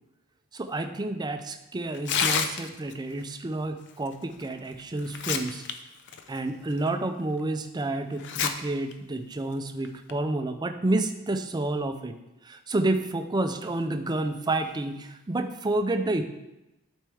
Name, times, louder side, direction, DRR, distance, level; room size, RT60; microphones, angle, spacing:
voice 1, 0.5-5.6 6.3-12.2 12.4-16.2, right 2 dB, 20° right, 7 dB, 0.4 m, -29 dB
Tearing, 1.9-2.9 4.4-4.5 5.0-5.7 6.1-6.2 6.9-7.0 8.2-8.5 8.9-9.0 9.8-10.1, left 7 dB, 55° left, 0.5 m, -27 dB
12.0 x 4.4 x 3.5 m, 0.96 s
head